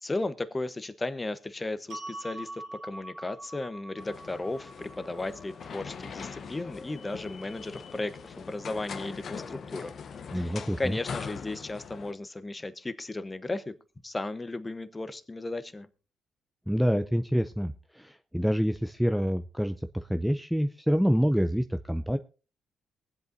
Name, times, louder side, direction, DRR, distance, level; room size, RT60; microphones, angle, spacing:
voice 1, 0.0-10.0 10.3-13.7 14.0-15.9, left 2 dB, 20° left, 13 dB, 0.9 m, -35 dB
sound 1, 1.9-8.1, right 1 dB, 65° right, 2.8 m, -45 dB
sound 2, 4.0-12.1, left 6 dB, 55° left, 0.9 m, -41 dB
voice 2, 10.3-11.0 16.7-22.2, equal, ahead, 9 dB, 0.5 m, -27 dB
23.0 x 7.9 x 2.7 m, 0.35 s
cardioid pair, 90°, 0 cm